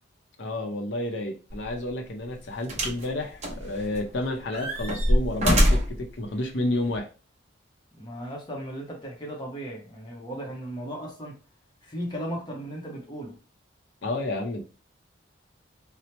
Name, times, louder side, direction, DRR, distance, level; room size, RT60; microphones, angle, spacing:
voice 1, 0.4-7.1 14.0-14.6, left 2 dB, 65° left, 0.6 m, -30 dB
sound 1, 1.5-1.7 2.7-3.1 3.4-4.1 4.5-6.0 6.9-7.0, equal, 35° right, 0.8 m, -23 dB
voice 2, 8.0-11.4 11.8-13.4, equal, 25° left, 0.6 m, -36 dB
2.9 x 2.0 x 3.1 m
head